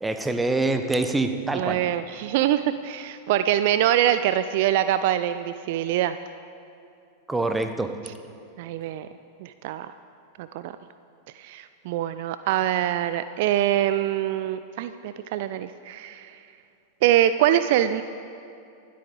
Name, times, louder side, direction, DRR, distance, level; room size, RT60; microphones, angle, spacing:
voice 1, 0.0-1.8 7.3-7.9, right 2 dB, 10° right, 8 dB, 0.8 m, -25 dB
voice 2, 1.5-6.2 8.6-9.1 9.4-9.9 10.4-10.8 11.4-16.4 17.0-18.0, right 12 dB, 50° right, 12 dB, 0.3 m, -24 dB
25.0 x 8.4 x 3.9 m, 2.5 s
figure-of-eight pair, 90°, 0 cm